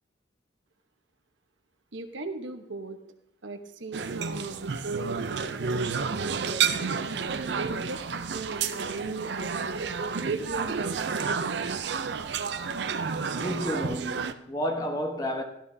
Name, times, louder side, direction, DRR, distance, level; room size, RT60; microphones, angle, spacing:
voice 1, 1.9-3.0 3.4-7.0 7.5-9.7 10.2-11.6, right 3 dB, 80° right, 1.1 m, -37 dB
sound 1, 3.9-14.3, right 6 dB, 60° right, 0.5 m, -30 dB
voice 2, 13.3-15.4, equal, 20° left, 1.1 m, -31 dB
13.0 x 12.0 x 2.8 m
head